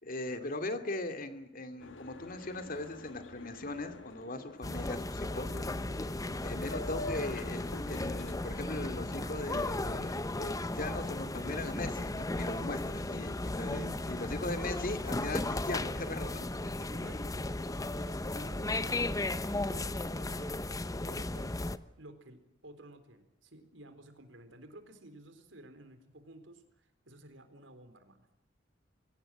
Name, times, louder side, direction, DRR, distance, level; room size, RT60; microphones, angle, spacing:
voice 1, 0.0-5.5 6.0-6.1 6.4-16.5, left 2 dB, 50° left, 9 dB, 2.5 m, -39 dB
Boat Water vehicle, 1.8-8.4, left 2 dB, 85° left, 1.4 m, -47 dB
sound 1, 4.6-21.8, left 2 dB, 20° left, 0.8 m, -35 dB
voice 2, 13.5-14.4 16.5-20.7 21.0-21.7 22.0-28.3, right 1 dB, 85° right, 9 dB, 4.0 m, -53 dB
24.5 x 18.0 x 9.1 m, 0.81 s
head